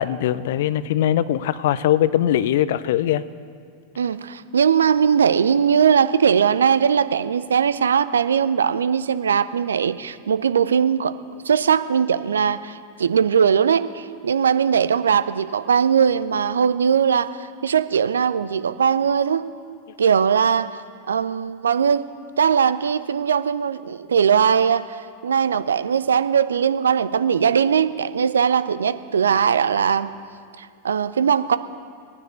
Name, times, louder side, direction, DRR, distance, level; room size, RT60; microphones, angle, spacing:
voice 1, 0.0-3.2, left 11 dB, 55° left, 17 dB, 0.5 m, -21 dB
voice 2, 4.0-11.1 11.4-19.4 20.0-20.8 21.1-22.0 22.4-30.1 30.6-31.6, right 7 dB, 70° right, 13 dB, 0.5 m, -20 dB
18.5 x 9.9 x 6.9 m, 2.2 s
figure-of-eight pair, 90°, 0 cm